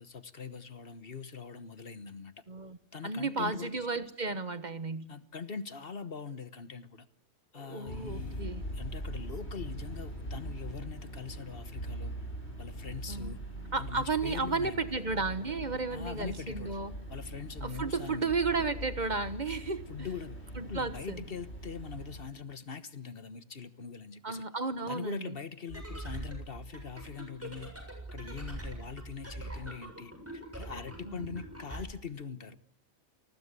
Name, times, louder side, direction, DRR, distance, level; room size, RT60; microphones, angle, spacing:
voice 1, 0.0-2.3 2.9-3.7 5.1-7.1 7.5-8.5 8.7-12.1 12.6-13.4 13.8-14.9 15.9-16.8 17.1-18.6 19.9-24.4 24.9-27.7 28.1-32.6, left 6 dB, 60° left, 13 dB, 1.5 m, -42 dB
voice 2, 2.5-2.8 3.0-5.1 7.5-8.6 13.1-13.3 13.7-16.9 17.6-20.1 20.6-21.2 24.2-25.4 31.0-31.4, right 4 dB, 45° right, 13 dB, 1.5 m, -33 dB
sound 1, 7.9-22.2, equal, 75° left, 7.9 m, -42 dB
sound 2, 25.7-31.8, right 1 dB, 10° right, 7.0 m, -43 dB
28.0 x 20.5 x 8.3 m, 0.65 s
omnidirectional pair, 1.1 m